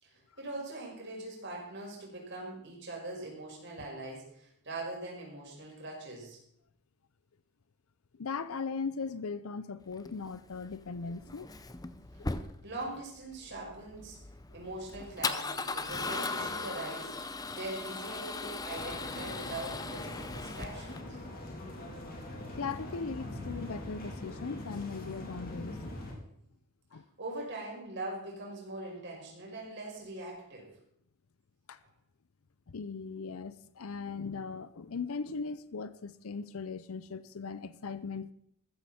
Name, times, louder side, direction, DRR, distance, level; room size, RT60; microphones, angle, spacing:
voice 1, 0.0-6.4 12.6-14.2 14.5-21.2 27.2-30.7, right 2 dB, 50° right, 5.6 m, -42 dB
voice 2, 8.2-11.5 12.2-12.3 22.5-26.0 26.9-27.0 31.7-31.8 32.7-38.3, left 4 dB, 75° left, 0.6 m, -39 dB
Male speech man speaking / Car / Engine starting, 9.9-21.0, left 3 dB, 15° left, 0.6 m, -38 dB
sound 1, 18.7-26.1, left 1 dB, 40° left, 3.3 m, -42 dB
14.5 x 14.0 x 4.4 m
head